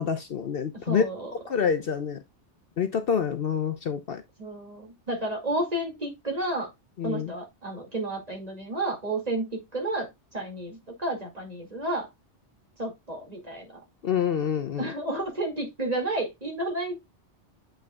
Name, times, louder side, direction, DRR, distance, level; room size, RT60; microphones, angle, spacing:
voice 1, 0.0-1.0 1.5-2.2 2.8-4.2 7.0-7.3 14.0-14.9, left 7 dB, 60° left, 0.8 m, -27 dB
voice 2, 0.9-1.3 4.4-6.7 7.0-12.1 12.8-13.8 14.8-17.0, right 1 dB, 35° right, 2.4 m, -31 dB
7.7 x 5.6 x 2.2 m
omnidirectional pair, 1.2 m